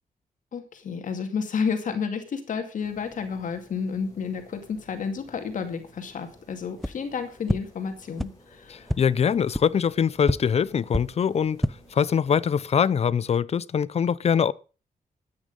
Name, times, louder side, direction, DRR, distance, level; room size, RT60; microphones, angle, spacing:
voice 1, 0.5-9.0, left 6 dB, 70° left, 2.4 m, -31 dB
sound 1, 2.8-12.7, left 1 dB, 25° left, 5.8 m, -55 dB
sound 2, 6.8-6.9 7.5-7.6 8.2-8.3 8.8-9.0 9.5-9.6 10.2-10.3 10.9-11.0 11.5-11.7, equal, ahead, 0.7 m, -25 dB
voice 2, 8.7-11.6 11.9-14.5, left 7 dB, 50° left, 0.6 m, -23 dB
13.0 x 9.5 x 5.3 m
cardioid pair, 110°, 14 cm